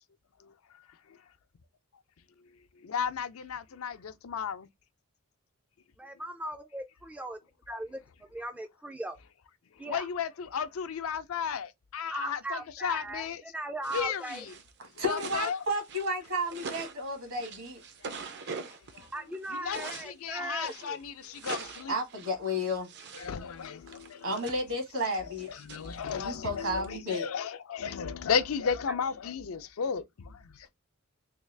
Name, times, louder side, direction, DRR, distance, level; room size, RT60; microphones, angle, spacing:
voice 1, 2.8-4.7 9.8-13.4 13.9-14.5 15.1-15.6 18.9-19.1 19.6-22.0 23.2-24.4 25.5-30.7, left 6 dB, 75° left, 0.5 m, -34 dB
voice 2, 6.0-7.4 7.7-8.0 8.3-9.2 9.8-10.1 12.1-14.5 19.1-21.0, right 1 dB, 5° right, 0.3 m, -38 dB
sound 1, 13.8-20.1 20.6-23.3 23.6-26.9, right 5 dB, 55° right, 0.6 m, -43 dB
voice 3, 15.0-17.8 21.9-22.9 24.2-25.5 26.1-27.2, equal, 70° right, 1.5 m, -32 dB
3.6 x 2.3 x 3.2 m
head